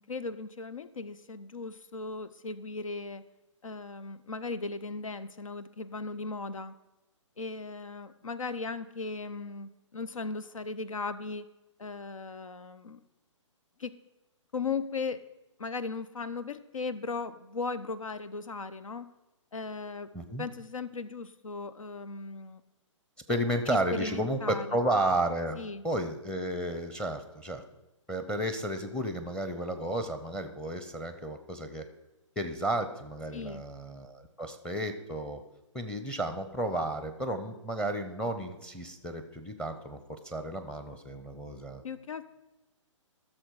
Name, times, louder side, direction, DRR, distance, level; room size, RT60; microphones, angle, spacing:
voice 1, 0.0-3.2 3.6-6.8 7.4-11.5 11.8-13.0 13.8-13.9 14.5-15.2 15.6-19.1 19.5-20.1 20.4-22.6 23.3-23.4 23.7-24.8 25.5-25.8 33.3-33.6 41.8-42.2, left 4 dB, 90° left, 14 dB, 0.7 m, -37 dB
voice 2, 20.1-20.4 23.3-27.6 28.1-31.9 32.4-35.4 35.7-40.0 40.2-41.8, right 1 dB, 5° left, 8 dB, 0.7 m, -32 dB
14.5 x 6.4 x 4.8 m, 1.0 s
hypercardioid pair, 140°, 16 cm